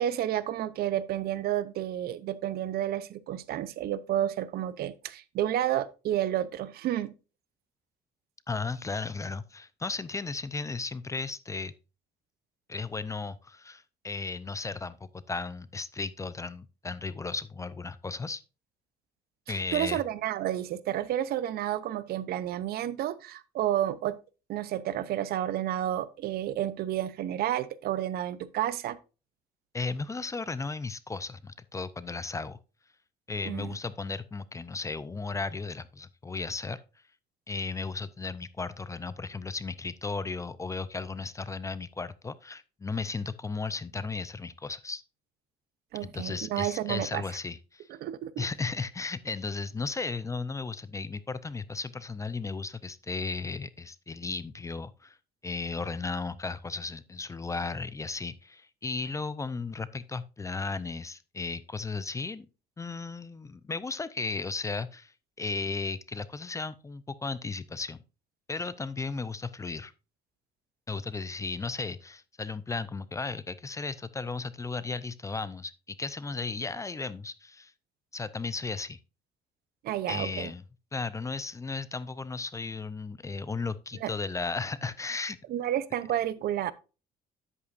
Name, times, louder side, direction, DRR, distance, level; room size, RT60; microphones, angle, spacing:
voice 1, 0.0-7.1 19.5-24.2 24.5-29.0 33.5-33.8 45.9-47.2 47.9-48.5 79.8-80.5 84.0-84.1 85.5-86.7, right 12 dB, 70° right, 0.6 m, -31 dB
voice 2, 8.5-11.7 12.7-18.4 19.5-20.0 29.7-32.6 33.3-36.8 37.5-45.0 46.0-47.9 48.4-55.2 55.4-62.5 62.8-68.0 68.5-69.9 70.9-77.7 78.1-79.0 80.1-80.6 80.9-85.4, left 4 dB, 20° left, 0.5 m, -35 dB
9.6 x 8.2 x 2.5 m
cardioid pair, 110°, 17 cm